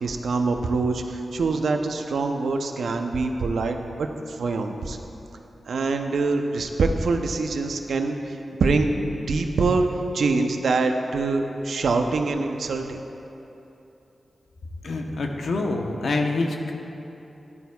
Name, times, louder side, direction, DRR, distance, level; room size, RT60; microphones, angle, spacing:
voice 1, 0.0-5.0 5.7-8.9 9.3-9.9 10.1-13.0, right 3 dB, 85° right, 4 dB, 0.6 m, -24 dB
voice 2, 14.8-16.7, left 2 dB, 80° left, 2 dB, 0.9 m, -26 dB
14.0 x 11.0 x 2.3 m, 3.0 s
cardioid pair, 75°, 0 cm